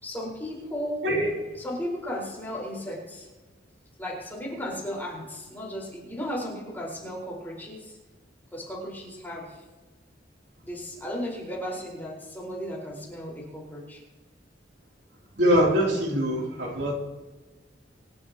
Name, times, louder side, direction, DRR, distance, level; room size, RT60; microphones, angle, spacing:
voice 1, 0.0-1.0 1.6-3.3 4.0-8.0 8.5-9.6 10.6-14.0, equal, 10° left, -3 dB, 4.9 m, -35 dB
voice 2, 1.0-1.3 15.4-16.9, equal, 70° right, -2 dB, 3.3 m, -23 dB
26.5 x 11.5 x 3.0 m, 1.2 s
head